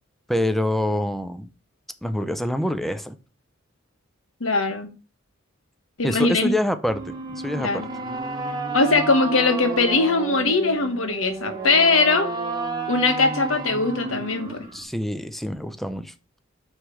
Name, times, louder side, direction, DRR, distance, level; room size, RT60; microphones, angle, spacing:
voice 1, 0.3-1.5 2.0-3.2 6.0-7.9 14.7-16.1, left 1 dB, ahead, 10 dB, 0.5 m, -26 dB
voice 2, 4.4-4.9 6.0-6.5 7.6-7.9 8.7-12.3 12.9-14.6, left 3 dB, 85° left, 7 dB, 1.4 m, -21 dB
sound 1, 6.9-14.8, right 3 dB, 20° right, 1.1 m, -31 dB
8.0 x 3.2 x 6.3 m, 0.33 s
head